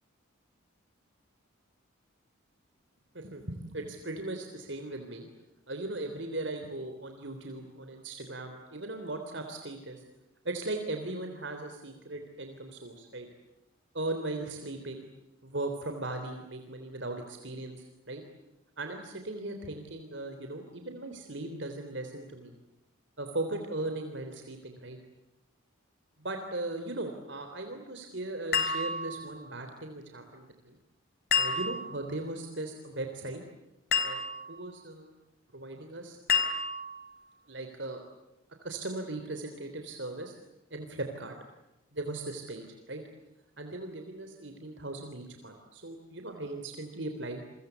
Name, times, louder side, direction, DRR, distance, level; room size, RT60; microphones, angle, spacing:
voice 1, 3.1-5.3 5.7-10.0 10.5-13.3 13.9-15.1 15.4-18.2 18.8-22.5 23.2-25.0 26.2-30.8 31.4-33.4 33.9-35.1 35.5-36.2 37.5-38.0 38.6-40.3 40.7-41.3 41.9-43.0 43.6-47.4, right 2 dB, 60° right, 5 dB, 3.6 m, -38 dB
sound 1, 28.5-29.5 31.3-32.1 33.9-34.6 36.3-37.1, left 5 dB, 50° left, 4.8 m, -30 dB
29.5 x 23.5 x 8.2 m, 0.96 s
head